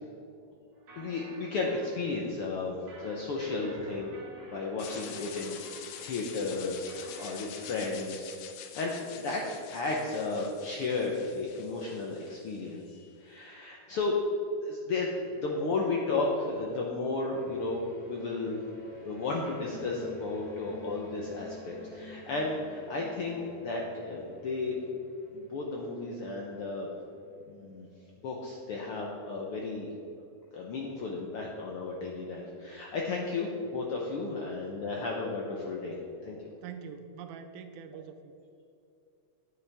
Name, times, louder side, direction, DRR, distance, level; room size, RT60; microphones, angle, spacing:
sound 1, 0.7-7.4, right 2 dB, 40° right, 2.0 m, -52 dB
voice 1, 1.0-2.8 3.0-4.2 4.5-8.3 8.7-14.2 14.6-18.6 19.0-24.8 25.3-26.9 27.5-27.9 28.2-29.9 30.5-36.0 36.2-36.4, left 3 dB, 70° left, -1 dB, 1.3 m, -33 dB
sound 2, 4.8-12.8, left 9 dB, 90° left, 2.2 m, -46 dB
sound 3, 17.3-28.7, left 1 dB, 10° left, 1.7 m, -50 dB
voice 2, 36.6-38.3, right 7 dB, 80° right, 8 dB, 2.0 m, -44 dB
9.7 x 8.8 x 3.4 m, 2.7 s
omnidirectional pair, 3.5 m